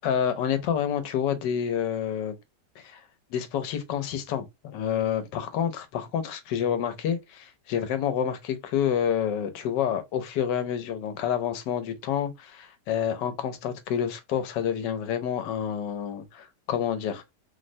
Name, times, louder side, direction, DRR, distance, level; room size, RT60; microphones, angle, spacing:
voice 1, 0.0-2.4 2.8-3.0 3.3-4.5 4.7-17.2, left 8 dB, 90° left, 1.2 m, -28 dB
3.3 x 2.1 x 2.5 m
omnidirectional pair, 1.9 m